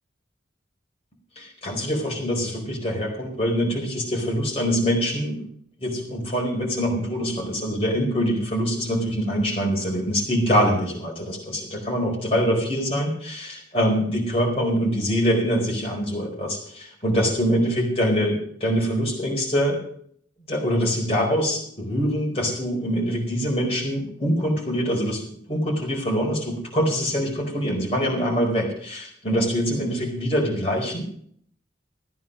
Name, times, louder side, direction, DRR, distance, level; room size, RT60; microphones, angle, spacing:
voice 1, 1.4-5.4 5.8-19.8 20.5-25.2 25.5-31.0, equal, 30° left, -1 dB, 4.5 m, -24 dB
15.0 x 9.4 x 6.3 m, 0.64 s
head